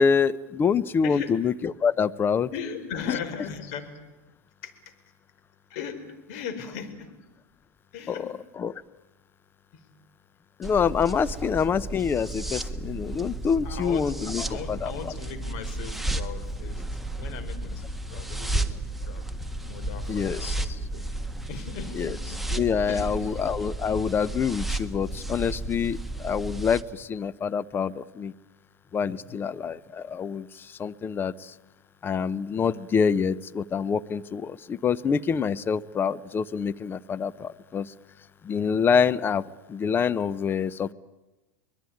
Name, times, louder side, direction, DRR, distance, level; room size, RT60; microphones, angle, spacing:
voice 1, 0.0-2.5 3.1-3.2 8.1-8.7 10.6-15.1 20.1-20.8 21.9-22.2 22.5-28.3 28.9-31.5 32.0-37.9 38.4-40.9, left 6 dB, 25° left, 17 dB, 0.9 m, -26 dB
voice 2, 1.0-1.3 2.5-3.9 4.6-4.9 5.7-7.2 7.9-8.3 9.7-9.9 11.3-11.4 13.6-16.8 17.1-17.8 18.1-19.2 19.6-21.1 21.5-22.5 22.9-23.4 25.2-25.3 29.1-29.4, left 7 dB, 60° left, 8 dB, 4.8 m, -38 dB
sound 1, 10.6-26.8, right 1 dB, ahead, 1.6 m, -33 dB
24.0 x 21.0 x 9.5 m, 1.1 s
hypercardioid pair, 105°, 8 cm